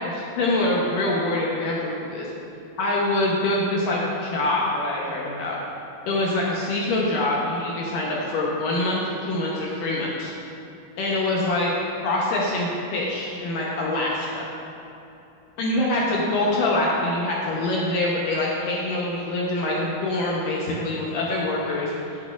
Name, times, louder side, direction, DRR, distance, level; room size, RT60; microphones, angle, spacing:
voice 1, 0.0-2.3 2.8-5.6 6.1-10.3 11.0-11.7 12.0-14.5 15.6-21.9, left 2 dB, 80° left, -4 dB, 2.2 m, -25 dB
8.7 x 8.1 x 2.4 m, 2.9 s
omnidirectional pair, 4.1 m